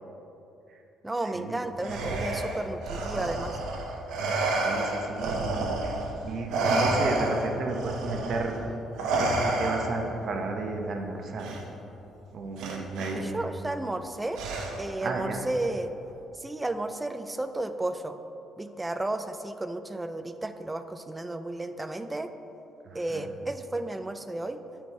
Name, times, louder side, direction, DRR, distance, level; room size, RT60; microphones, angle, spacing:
voice 1, 1.0-3.6 13.1-14.4 14.8-15.9 16.3-18.2 18.6-22.3 22.9-24.6, right 2 dB, 10° right, 9 dB, 0.3 m, -33 dB
Respiratory sounds, 1.8-6.1 6.5-10.1 11.4-11.6 12.6-13.1 14.3-15.0, right 2 dB, 80° right, 0.8 m, -29 dB
voice 2, 4.5-6.0 6.2-8.6 9.2-11.6 12.3-13.3 15.0-15.4 22.8-23.2, right 3 dB, 45° right, 3 dB, 0.8 m, -33 dB
8.4 x 4.3 x 4.6 m, 2.9 s
cardioid pair, 145°, 0 cm